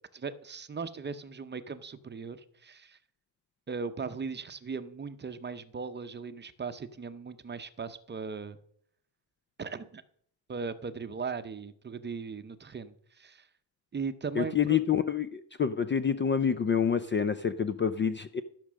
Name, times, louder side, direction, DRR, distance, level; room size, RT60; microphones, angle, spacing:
voice 1, 0.1-3.0 3.7-8.6 9.6-10.0 10.5-13.5 13.9-14.8, right 5 dB, 25° right, 11 dB, 0.7 m, -38 dB
voice 2, 14.4-18.4, left 7 dB, 25° left, 12 dB, 0.4 m, -27 dB
13.5 x 6.6 x 6.2 m, 0.63 s
cardioid pair, 135°, 46 cm